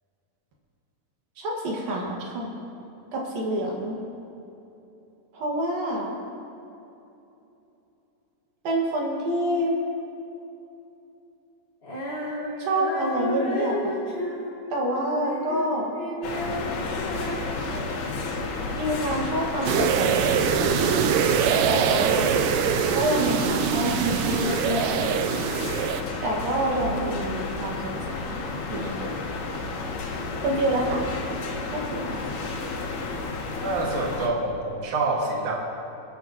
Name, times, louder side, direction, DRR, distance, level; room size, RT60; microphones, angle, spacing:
voice 1, 1.4-2.5 3.1-4.0 5.3-6.1 8.6-9.7 12.6-14.2 14.7-15.9 18.8-21.1 21.7-22.3 22.9-25.2 26.2-27.8 28.1-28.4 28.7-29.2 30.4-31.0 31.7-32.3, right 1 dB, 65° right, -2 dB, 3.4 m, -27 dB
Female singing, 11.8-18.2, left 1 dB, 30° left, 1.1 m, -33 dB
sound 1, 16.2-34.3, left 3 dB, 80° left, 3.4 m, -31 dB
sound 2, 19.7-26.0, right 9 dB, 85° right, 1.9 m, -23 dB
voice 2, 33.6-35.5, right 2 dB, 50° right, -2 dB, 2.3 m, -26 dB
27.5 x 10.5 x 3.0 m, 2.9 s
omnidirectional pair, 4.4 m